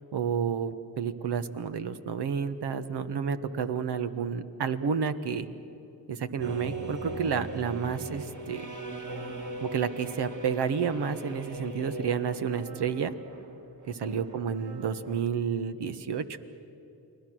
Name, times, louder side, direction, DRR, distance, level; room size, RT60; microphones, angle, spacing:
voice 1, 0.1-5.5 6.1-8.7 9.6-13.1 13.9-16.4, right 6 dB, 65° right, 10 dB, 1.4 m, -30 dB
sound 1, 6.4-15.2, right 2 dB, 40° right, 2.7 m, -39 dB
29.5 x 20.5 x 6.4 m, 3.0 s
supercardioid pair, 45°, 43 cm